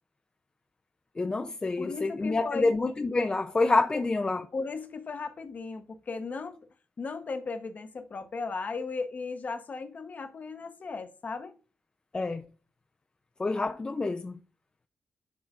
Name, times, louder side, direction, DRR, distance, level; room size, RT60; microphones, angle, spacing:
voice 1, 1.2-4.4 12.1-12.4 13.4-14.4, left 3 dB, 20° left, 0.4 m, -27 dB
voice 2, 1.8-2.8 4.5-6.6 7.0-11.5, left 4 dB, 40° left, 0.8 m, -36 dB
11.5 x 4.6 x 2.4 m
wide cardioid pair, 175°, 4 cm